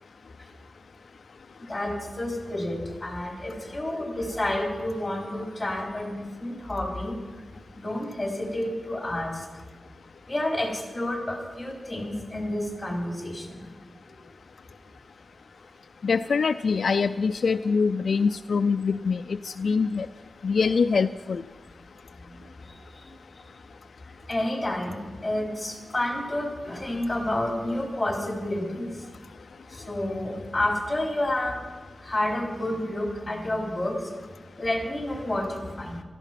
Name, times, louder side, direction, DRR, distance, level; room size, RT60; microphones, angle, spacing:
voice 1, 1.6-7.2 7.8-9.4 10.3-13.6 22.3-22.4 24.3-29.0 29.7-31.6 32.0-34.0 34.6-36.0, left 1 dB, 15° left, 1 dB, 3.8 m, -30 dB
voice 2, 16.0-20.1 20.4-21.4, left 5 dB, 70° left, 9 dB, 0.4 m, -24 dB
17.0 x 13.5 x 5.8 m, 1.4 s
wide cardioid pair, 130°, 0 cm